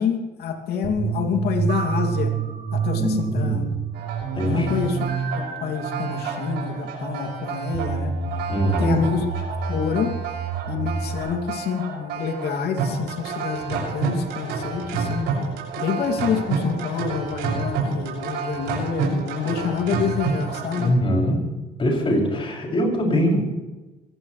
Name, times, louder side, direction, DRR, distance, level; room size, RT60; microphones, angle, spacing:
voice 1, 0.0-2.3 2.7-3.7 4.5-5.0 5.3-8.1 8.8-9.2 9.7-10.1 10.7-15.3 15.8-20.9, left 6 dB, 70° left, 3 dB, 2.8 m, -27 dB
sound 1, 0.8-11.2, right 6 dB, 70° right, 4.4 m, -28 dB
voice 2, 2.9-3.7 4.4-4.7 8.5-9.1 20.8-21.5 21.8-23.4, equal, 30° left, -1 dB, 7.0 m, -22 dB
sound 2, 3.9-20.9, right 5 dB, 90° right, 7.1 m, -30 dB
23.0 x 17.0 x 3.4 m, 1.1 s
cardioid pair, 110°, 17 cm